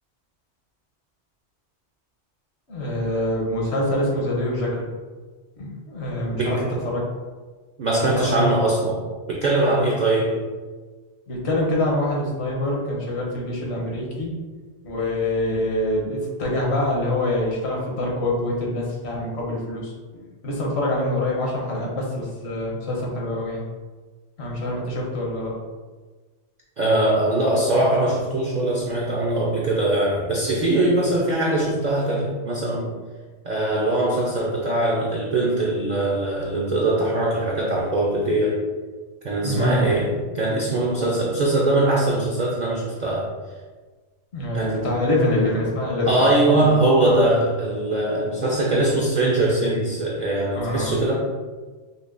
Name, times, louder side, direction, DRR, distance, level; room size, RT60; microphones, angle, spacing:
voice 1, 2.7-4.9 5.6-7.1 8.1-8.4 11.3-14.3 14.8-23.6 24.4-25.5 39.4-40.0 44.3-46.2 46.5-46.7 50.5-51.0, left 1 dB, 65° left, -2 dB, 1.1 m, -25 dB
voice 2, 6.3-6.7 7.8-10.4 26.8-32.9 33.4-38.6 39.2-43.3 44.5-44.9 46.1-51.2, right 2 dB, 55° right, -2 dB, 0.5 m, -21 dB
5.3 x 2.1 x 2.4 m, 1.4 s
omnidirectional pair, 1.2 m